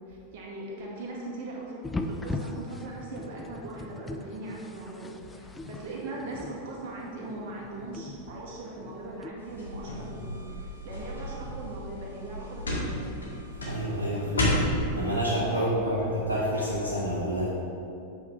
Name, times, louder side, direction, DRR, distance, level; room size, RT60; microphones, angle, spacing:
voice 1, 0.1-10.4 10.8-13.1 15.5-16.0, right 2 dB, 50° right, -3 dB, 1.9 m, -40 dB
sound 1, 1.8-9.3, left 2 dB, 10° left, 0.4 m, -39 dB
sound 2, 9.4-14.9, left 1 dB, 75° left, 1.9 m, -32 dB
voice 2, 13.6-14.5 14.9-17.5, equal, 80° right, -6 dB, 1.1 m, -28 dB
8.4 x 4.6 x 5.3 m, 2.6 s
figure-of-eight pair, 90°, 0 cm